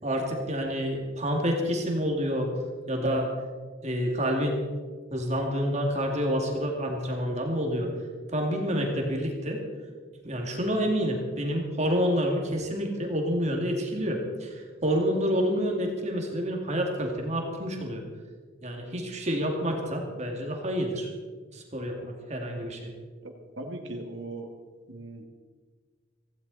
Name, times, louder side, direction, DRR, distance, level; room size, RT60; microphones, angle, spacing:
voice 1, 0.0-2.5 2.9-3.3 3.8-4.6 5.1-7.9 8.3-9.6 10.2-18.0 18.6-21.1 21.5-22.9, equal, 35° right, 1 dB, 2.3 m, -28 dB
voice 2, 23.2-24.5 24.9-25.2, right 2 dB, 70° right, 3 dB, 2.0 m, -39 dB
17.0 x 15.5 x 4.1 m, 1.5 s
head